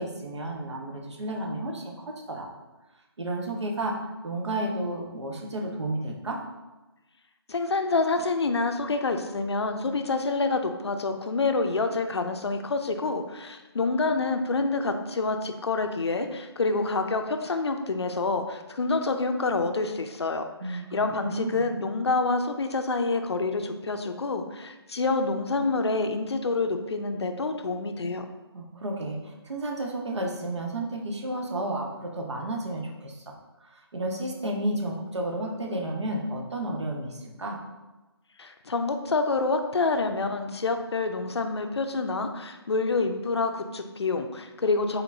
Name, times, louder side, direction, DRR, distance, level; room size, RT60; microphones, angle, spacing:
voice 1, 0.0-2.5 3.2-3.9 4.2-6.4 20.6-20.9 21.2-21.7 28.5-33.3 33.7-37.6, right 1 dB, 85° right, 0 dB, 1.1 m, -32 dB
voice 2, 7.5-28.3 38.4-45.0, left 3 dB, 70° left, 6 dB, 0.5 m, -27 dB
4.3 x 3.9 x 2.7 m, 1.1 s
hypercardioid pair, 180°, 14 cm